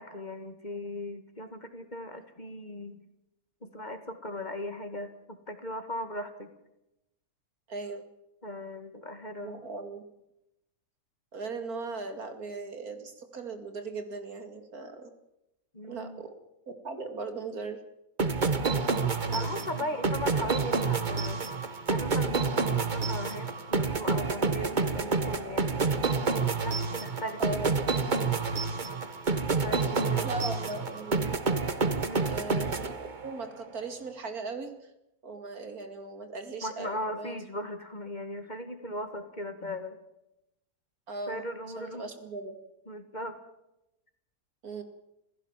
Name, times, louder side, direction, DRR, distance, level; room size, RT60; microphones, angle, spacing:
voice 1, 0.0-3.0 3.6-6.5 8.4-9.6 15.7-16.2 19.3-21.4 21.9-25.8 26.6-27.4 29.6-30.2 32.0-32.3 36.6-40.0 41.3-42.1 42.9-43.4, left 1 dB, 30° left, 8 dB, 2.1 m, -38 dB
voice 2, 7.7-8.0 9.3-10.0 11.3-15.1 15.9-16.3 16.7-17.8 19.3-19.5 27.4-27.7 30.2-31.4 32.2-34.9 35.2-37.4 41.1-41.4 41.8-42.5 44.6-44.8, right 3 dB, 80° right, 7 dB, 2.9 m, -38 dB
sound 1, 18.2-33.5, right 4 dB, 35° right, 1.3 m, -29 dB
27.5 x 16.0 x 7.5 m, 0.88 s
omnidirectional pair, 1.5 m